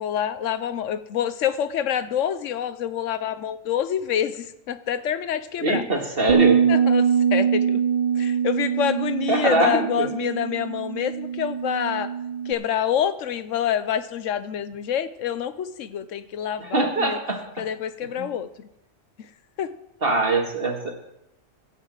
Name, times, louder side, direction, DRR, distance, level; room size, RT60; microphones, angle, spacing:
voice 1, 0.0-5.8 6.7-7.8 8.2-12.1 12.5-17.2 17.6-18.7 19.6-19.7, left 9 dB, 85° left, 13 dB, 1.1 m, -27 dB
voice 2, 5.6-6.6 9.3-10.1 16.6-17.4 18.2-18.3 20.0-20.9, right 2 dB, 50° right, 2 dB, 2.0 m, -23 dB
Bass guitar, 6.3-12.5, right 7 dB, 30° right, 0.8 m, -23 dB
16.5 x 5.7 x 7.5 m, 0.88 s
omnidirectional pair, 1.3 m